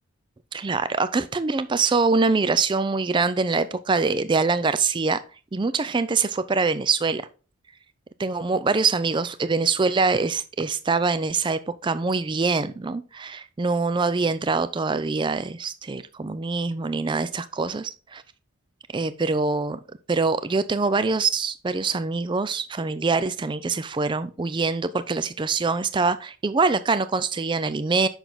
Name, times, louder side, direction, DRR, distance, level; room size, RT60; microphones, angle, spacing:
voice 1, 0.5-5.2 5.5-7.3 8.2-18.2 18.9-19.8 20.1-28.1, right 4 dB, 20° right, 13 dB, 0.3 m, -24 dB
7.0 x 5.9 x 3.9 m, 0.35 s
head